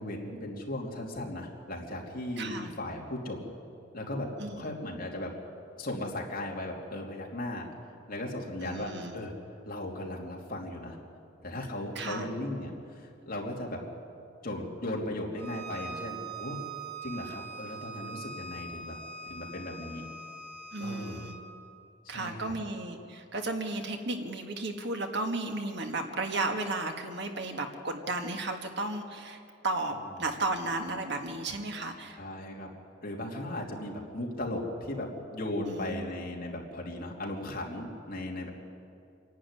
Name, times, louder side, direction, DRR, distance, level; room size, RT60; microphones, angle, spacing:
voice 1, 0.0-3.4 3.9-4.3 4.6-5.3 5.8-7.7 8.1-9.3 9.7-11.0 11.4-13.8 14.4-16.6 17.0-19.0 19.2-20.0 20.8-21.3 22.0-22.5 32.1-32.7 33.0-38.5, left 1 dB, 50° left, -1 dB, 3.0 m, -37 dB
voice 2, 2.4-2.7 4.4-4.7 8.6-9.2 12.0-12.3 20.7-21.3 22.1-32.2 35.6-36.1, right 2 dB, 65° right, 4 dB, 1.8 m, -34 dB
Bowed string instrument, 15.4-21.4, right 4 dB, 35° right, 4.7 m, -42 dB
26.5 x 11.5 x 9.8 m, 2.5 s
head